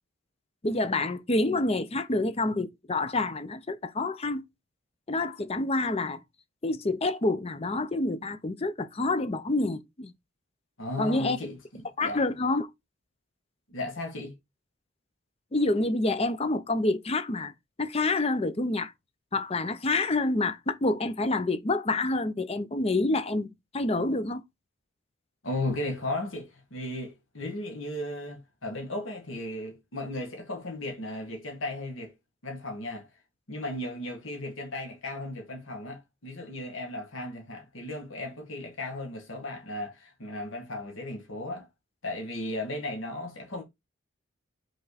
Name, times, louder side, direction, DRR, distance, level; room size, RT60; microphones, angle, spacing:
voice 1, 0.6-4.5 5.1-6.2 6.6-10.1 11.0-11.4 12.0-12.7 15.5-17.5 17.8-18.9 19.3-24.4, left 2 dB, 30° left, 0.6 m, -27 dB
voice 2, 10.8-12.2 13.7-14.3 25.4-32.1 32.4-33.1 33.5-41.7 42.0-43.6, left 1 dB, 75° left, 1.8 m, -35 dB
5.5 x 4.3 x 4.1 m
head